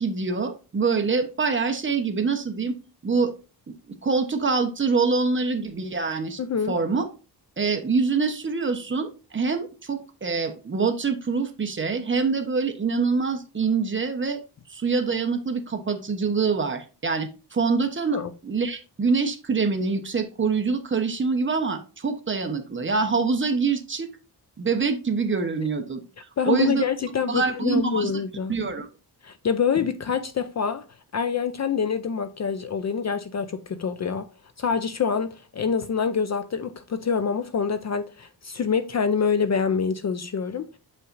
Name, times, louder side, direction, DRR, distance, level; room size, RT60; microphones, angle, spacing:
voice 1, 0.0-2.8 3.0-3.3 3.7-3.8 4.0-6.4 6.7-7.1 7.6-14.4 14.7-18.2 18.4-24.1 24.6-26.0 26.5-26.8 27.3-28.1 28.5-28.9, right 4 dB, 30° right, 0.9 m, -25 dB
voice 2, 6.4-6.8 18.1-18.3 26.4-28.5 29.2-30.8 31.1-34.3 34.6-40.7, left 6 dB, 40° left, 0.4 m, -26 dB
7.5 x 5.6 x 2.5 m
wide cardioid pair, 135°, 41 cm